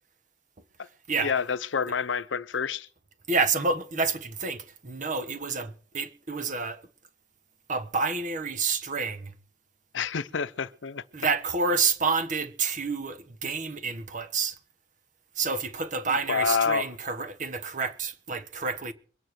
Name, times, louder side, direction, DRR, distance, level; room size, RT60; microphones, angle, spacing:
voice 1, 1.2-2.9 9.9-11.0 16.3-16.9, left 6 dB, 80° left, 0.7 m, -28 dB
voice 2, 3.3-6.8 7.7-9.3 11.1-14.6 15.3-18.9, right 4 dB, 45° right, 1.3 m, -29 dB
23.0 x 9.1 x 4.7 m
head